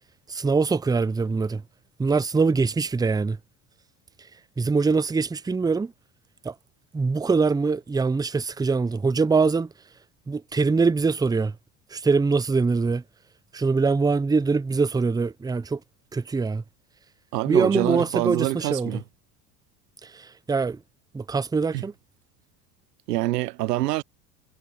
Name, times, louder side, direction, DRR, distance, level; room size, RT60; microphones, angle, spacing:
voice 1, 0.3-1.6 2.0-3.4 4.6-5.9 6.4-6.5 6.9-9.7 10.3-11.5 11.9-13.0 13.5-15.8 16.1-16.6 17.5-19.0 20.0-20.8 21.1-21.9, right 4 dB, 10° right, 0.7 m, -23 dB
voice 2, 17.3-19.0 21.7-21.8 23.1-24.0, right 17 dB, 80° right, 0.7 m, -26 dB
hypercardioid pair, 80°, 47 cm